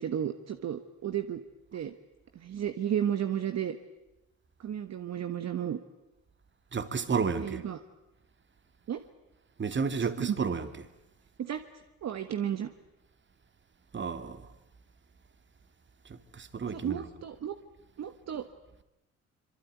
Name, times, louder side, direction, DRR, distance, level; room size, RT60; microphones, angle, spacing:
voice 1, 0.0-1.4 1.7-1.9 2.3-3.7 4.6-5.8 7.4-7.8 8.9-9.0 10.0-10.4 11.4-11.6 12.0-12.7 16.7-17.5 18.0-18.4, right 9 dB, 60° right, 1.4 m, -33 dB
voice 2, 6.7-7.6 9.6-10.7 13.9-14.5 16.1-17.1, right 5 dB, 40° right, 2.2 m, -31 dB
25.0 x 23.5 x 9.5 m
cardioid pair, 90°, 30 cm